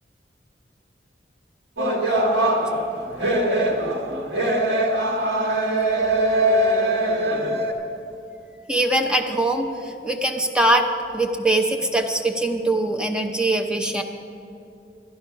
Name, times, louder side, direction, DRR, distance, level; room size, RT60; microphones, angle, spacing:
sound 1, 1.8-7.7, right 1 dB, 70° right, 1.7 m, -21 dB
voice 1, 8.7-10.9 11.1-14.0, right 1 dB, 5° right, 3 dB, 0.7 m, -22 dB
12.0 x 10.0 x 5.8 m, 2.6 s
head